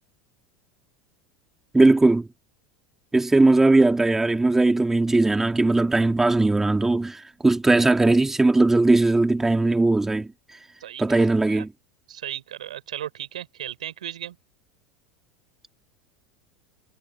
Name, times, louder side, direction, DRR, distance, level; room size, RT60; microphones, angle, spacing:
voice 1, 1.7-2.3 3.1-10.3 11.0-11.7, right 2 dB, 10° right, 3.1 m, -19 dB
voice 2, 10.8-11.7 12.1-14.4, right 11 dB, 80° right, 5.0 m, -36 dB
hypercardioid pair, 85°, 4 cm